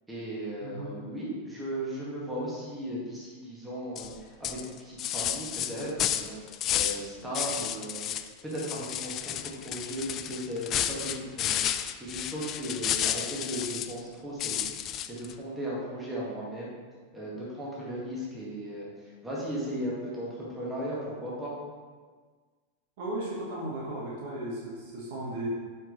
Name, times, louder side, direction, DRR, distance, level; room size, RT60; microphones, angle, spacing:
voice 1, 0.1-16.7 17.1-18.9 19.2-21.5, equal, 10° right, -6 dB, 2.0 m, -36 dB
sound 1, 4.0-4.1 4.4-7.1 7.3-8.3 8.6-14.0 14.4-15.3, left 10 dB, 35° left, 0.3 m, -31 dB
voice 2, 23.0-25.5, right 1 dB, 50° right, -5 dB, 1.8 m, -35 dB
7.1 x 5.3 x 3.3 m, 1.5 s
figure-of-eight pair, 90°, 0 cm